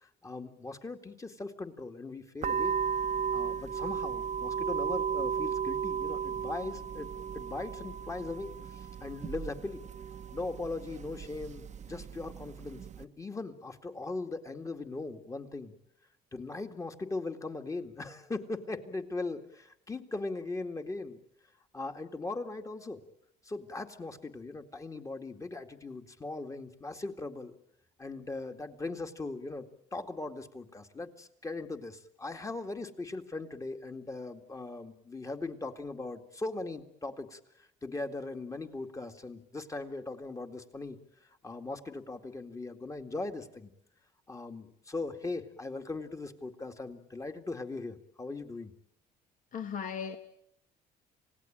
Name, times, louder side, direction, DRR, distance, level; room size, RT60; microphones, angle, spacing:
voice 1, 0.0-2.7 3.3-9.8 10.3-15.8 16.3-21.2 21.7-23.0 23.4-27.5 28.0-29.6 29.9-41.0 41.4-43.7 44.3-48.7, left 3 dB, 20° left, 2.2 m, -39 dB
sound 1, 2.4-13.0, right 7 dB, 45° right, 1.0 m, -35 dB
voice 2, 49.5-50.2, left 7 dB, 50° left, 1.7 m, -36 dB
27.0 x 18.5 x 8.8 m
cardioid pair, 110°, 17 cm